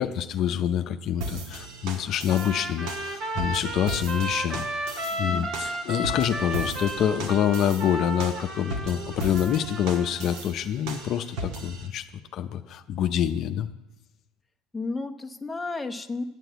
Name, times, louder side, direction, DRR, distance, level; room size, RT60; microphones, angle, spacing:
voice 1, 0.0-4.9 5.2-12.1 12.3-13.7, left 9 dB, 50° left, 7 dB, 0.6 m, -26 dB
sound 1, 1.2-11.9, right 2 dB, 70° right, 1.6 m, -37 dB
Trumpet, 2.3-10.4, right 1 dB, 55° right, 1.8 m, -33 dB
voice 2, 5.1-5.5 14.7-16.2, left 3 dB, 10° left, 3 dB, 0.8 m, -33 dB
9.2 x 7.7 x 8.0 m, 0.95 s
supercardioid pair, 110°, 0 cm